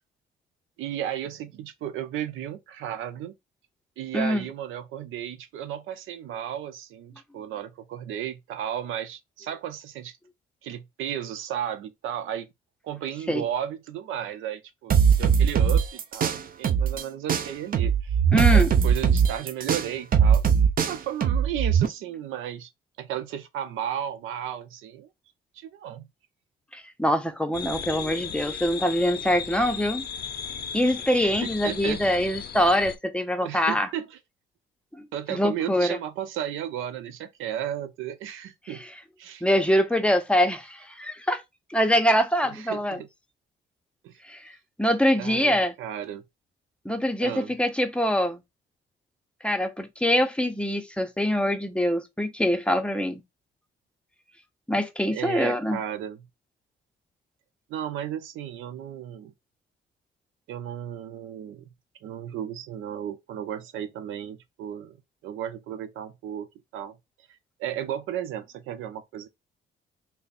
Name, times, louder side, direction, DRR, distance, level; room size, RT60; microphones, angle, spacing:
voice 1, 0.8-3.4 4.0-10.2 10.6-12.5 12.8-15.8 16.1-18.2 18.5-20.5 20.9-22.7 23.0-25.1 25.5-26.1 31.2-32.0 33.4-34.2 35.1-38.8 39.2-39.4 42.4-43.1 44.0-44.2 45.2-46.2 47.2-47.5 55.1-56.3 57.7-59.3 60.5-61.7 62.0-65.0 65.2-66.5 66.7-67.0 67.3-69.3, right 10 dB, 85° right, 0.6 m, -34 dB
voice 2, 4.1-4.4 13.3-13.4 18.3-18.7 26.7-30.1 30.7-33.9 35.0-36.0 39.4-41.4 41.7-43.0 44.3-44.5 44.8-45.7 46.8-48.4 49.4-53.2 54.7-55.8, equal, 5° left, 0.6 m, -24 dB
sound 1, 14.9-17.0 17.3-21.9, right 7 dB, 45° right, 0.6 m, -20 dB
sound 2, 27.5-32.9, left 7 dB, 55° left, 0.5 m, -36 dB
3.4 x 2.1 x 4.1 m
cardioid pair, 90°, 20 cm